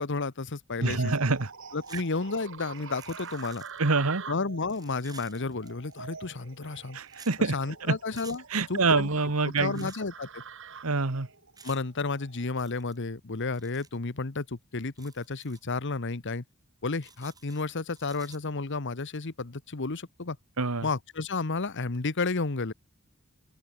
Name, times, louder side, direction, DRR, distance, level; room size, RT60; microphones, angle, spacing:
voice 1, 0.0-1.1 1.7-3.6 4.3-7.0 7.5-8.4 8.7-9.1 9.4-10.4 11.6-16.4 16.8-20.4 20.8-22.7, left 3 dB, 60° left, 1.2 m, -32 dB
sound 1, 0.8-12.5, right 5 dB, 65° right, 4.9 m, -45 dB
voice 2, 0.8-1.5 1.9-2.0 3.8-4.2 6.9-7.6 7.8-8.0 8.5-9.9 10.8-11.3 20.6-20.9, right 3 dB, 80° right, 1.5 m, -26 dB
sound 2, 1.8-2.1 2.4-3.9 4.6-5.9 7.1-7.3 8.1-8.4 9.7-10.0 11.6-11.8 12.5-13.0 13.5-14.0 14.9-15.6 17.0-18.4, right 5 dB, 20° right, 5.4 m, -53 dB
open air
head